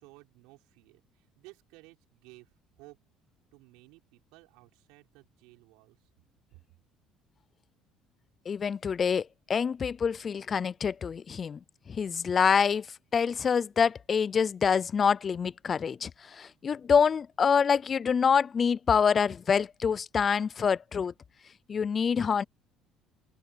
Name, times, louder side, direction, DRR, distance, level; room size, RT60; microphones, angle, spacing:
voice 1, 0.0-2.5 2.8-3.0 3.5-6.1 6.5-6.6, right 23 dB, 85° right, 4.9 m, -56 dB
voice 2, 8.5-11.6 11.9-12.9 13.1-21.1 21.7-22.4, left 6 dB, 35° left, 0.4 m, -26 dB
open air
cardioid pair, 100°, 0 cm